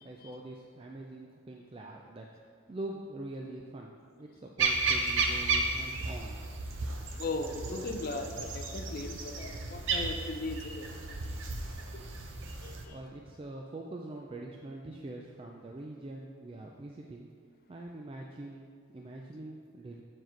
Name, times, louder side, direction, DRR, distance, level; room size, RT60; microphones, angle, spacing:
voice 1, 0.0-3.9 4.2-6.4 12.9-17.3 17.7-20.0, right 2 dB, 25° right, 0 dB, 0.3 m, -44 dB
sound 1, 4.6-12.8, right 3 dB, 60° right, 0.6 m, -33 dB
voice 2, 7.2-10.9 11.9-12.0 12.6-13.0, left 2 dB, 45° left, 5 dB, 0.5 m, -38 dB
8.0 x 4.7 x 4.4 m, 2.1 s
head